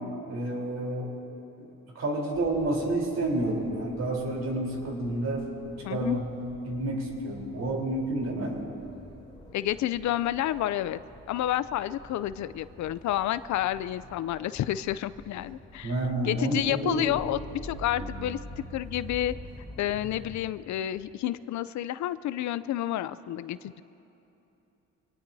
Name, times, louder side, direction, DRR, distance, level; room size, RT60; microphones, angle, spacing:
voice 1, 0.3-1.1 1.6-1.7 2.0-5.5 5.9-6.2 6.7-8.6 15.8-17.1 18.0-18.1, right 1 dB, 60° right, -1 dB, 3.7 m, -29 dB
sound 1, 2.3-20.4, equal, 15° left, 3.1 m, -47 dB
voice 2, 5.8-6.2 9.5-11.0 11.3-15.9 16.2-18.4 18.7-19.3 19.8-23.8, left 13 dB, 70° left, 15 dB, 0.5 m, -30 dB
25.0 x 18.5 x 2.7 m, 2.9 s
cardioid pair, 90°, 30 cm